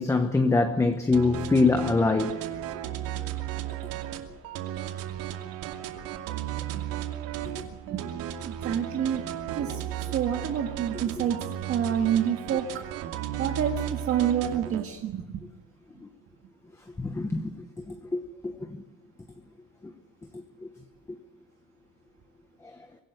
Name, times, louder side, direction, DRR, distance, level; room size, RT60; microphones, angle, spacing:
voice 1, 0.0-2.4 7.5-7.6 17.0-17.5 17.9-18.5 20.6-20.7, left 3 dB, 10° left, 0.9 m, -24 dB
sound 1, 1.1-14.8, right 11 dB, 85° right, 2.6 m, -35 dB
voice 2, 6.7-7.0 7.9-9.2 9.5-11.4 11.7-12.7 13.4-15.4, right 9 dB, 40° right, 1.7 m, -28 dB
24.5 x 16.5 x 8.0 m
cardioid pair, 180°, 34 cm